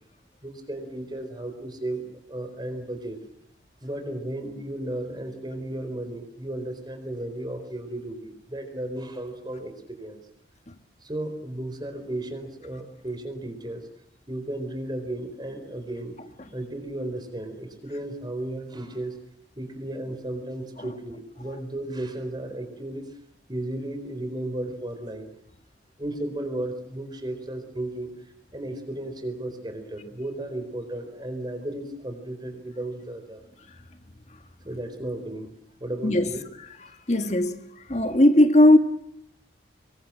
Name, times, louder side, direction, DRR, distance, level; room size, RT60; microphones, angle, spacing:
voice 1, 0.4-2.0 2.3-3.2 3.8-10.2 11.0-13.8 14.3-16.1 16.5-19.2 19.6-23.1 23.5-25.3 26.0-33.4 34.6-35.5 35.8-36.4, right 1 dB, 25° right, 4.5 m, -34 dB
voice 2, 37.1-37.6 37.9-38.8, left 1 dB, 40° left, 1.8 m, -17 dB
26.0 x 23.5 x 7.6 m
head